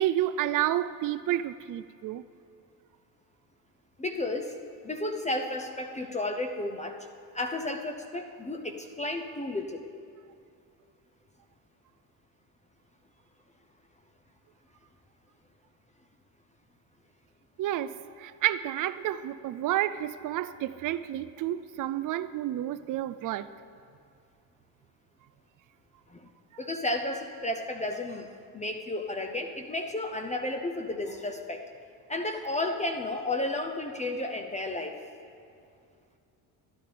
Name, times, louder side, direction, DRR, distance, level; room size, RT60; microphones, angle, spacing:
voice 1, 0.0-2.2 17.6-23.5, right 12 dB, 45° right, 14 dB, 0.4 m, -30 dB
voice 2, 4.0-4.6 4.8-7.0 7.3-9.9 26.1-26.3 26.6-28.3 28.5-31.6 32.1-35.0, left 2 dB, 15° left, 4 dB, 0.6 m, -32 dB
12.0 x 10.5 x 3.4 m, 2.4 s
supercardioid pair, 70°, 45 cm